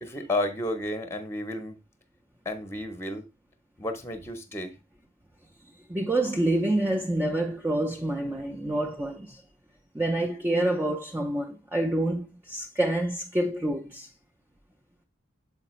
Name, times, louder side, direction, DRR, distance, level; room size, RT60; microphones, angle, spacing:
voice 1, 0.0-1.8 2.4-3.3 3.8-4.7, left 1 dB, 10° left, 0.7 m, -32 dB
voice 2, 5.9-9.4 9.9-14.1, right 1 dB, 10° right, 0.4 m, -27 dB
6.7 x 5.0 x 3.0 m
head